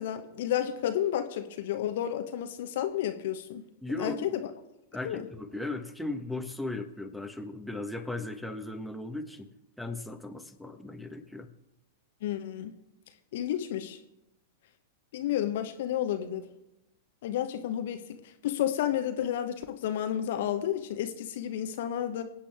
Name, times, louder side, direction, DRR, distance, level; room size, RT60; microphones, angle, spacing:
voice 1, 0.0-3.6 4.0-4.3 5.0-5.2 12.2-12.7 13.3-14.0 15.1-16.5 17.2-18.0 18.4-22.2, left 11 dB, 60° left, 8 dB, 1.0 m, -31 dB
voice 2, 3.8-4.4 4.9-9.5 9.8-11.5, left 2 dB, ahead, 4 dB, 1.3 m, -37 dB
25.5 x 8.8 x 3.6 m, 0.89 s
figure-of-eight pair, 95°, 0 cm